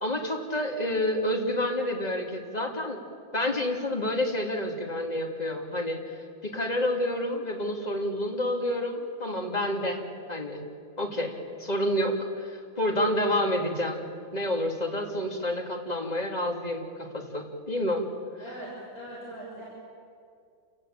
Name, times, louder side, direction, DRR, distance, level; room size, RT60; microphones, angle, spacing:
voice 1, 0.0-3.0 3.3-6.2 6.4-10.0 10.3-10.6 11.0-18.1, left 1 dB, 20° left, 1 dB, 2.7 m, -29 dB
voice 2, 18.4-19.6, equal, 40° left, -7 dB, 6.5 m, -41 dB
28.0 x 17.0 x 8.8 m, 2.4 s
omnidirectional pair, 2.1 m